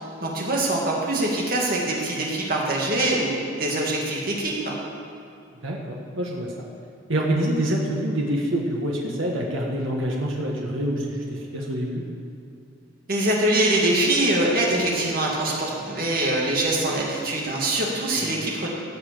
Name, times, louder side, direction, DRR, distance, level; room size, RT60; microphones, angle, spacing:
voice 1, 0.2-4.8 13.1-18.7, right 1 dB, 45° right, -3 dB, 2.1 m, -23 dB
voice 2, 5.6-6.7 7.1-12.0 18.2-18.4, right 1 dB, 90° right, -2 dB, 1.5 m, -26 dB
15.5 x 5.7 x 6.8 m, 2.7 s
head